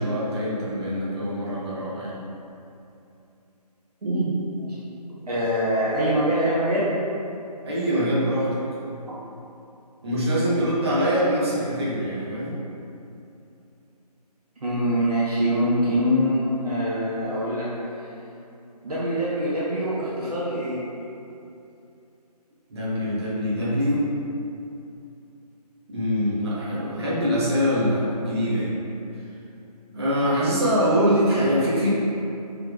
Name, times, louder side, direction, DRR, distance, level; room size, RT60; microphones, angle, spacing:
voice 1, 0.0-2.1 7.6-8.6 10.0-12.5 22.7-24.1 25.9-28.7 29.9-31.9, equal, 40° right, -8 dB, 1.1 m, -23 dB
voice 2, 4.0-4.8 5.3-6.9 9.1-9.2 14.6-17.7 18.0-18.1 18.8-20.8, equal, 65° right, -8 dB, 1.1 m, -24 dB
5.6 x 3.4 x 2.3 m, 2.7 s
hypercardioid pair, 170°, 21 cm